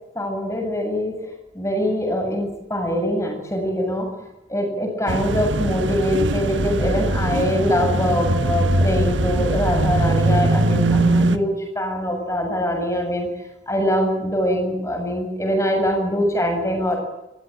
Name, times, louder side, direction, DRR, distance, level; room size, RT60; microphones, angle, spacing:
voice 1, 0.1-4.1 4.5-13.3 13.7-17.0, equal, 15° left, 3 dB, 7.4 m, -23 dB
sound 1, 5.1-11.4, right 2 dB, 85° right, 1.6 m, -21 dB
26.5 x 16.5 x 9.2 m, 0.97 s
head